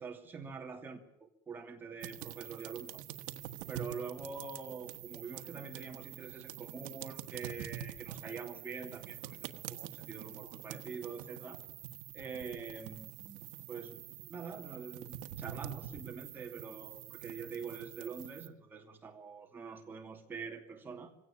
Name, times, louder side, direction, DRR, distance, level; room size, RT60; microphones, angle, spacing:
voice 1, 0.0-3.0 3.7-11.6 12.1-13.4 13.7-21.1, right 5 dB, 15° right, 2 dB, 2.6 m, -45 dB
sound 1, 2.0-18.5, right 12 dB, 70° right, 1.3 m, -46 dB
24.0 x 17.0 x 8.8 m, 0.78 s
cardioid pair, 180°, 14 cm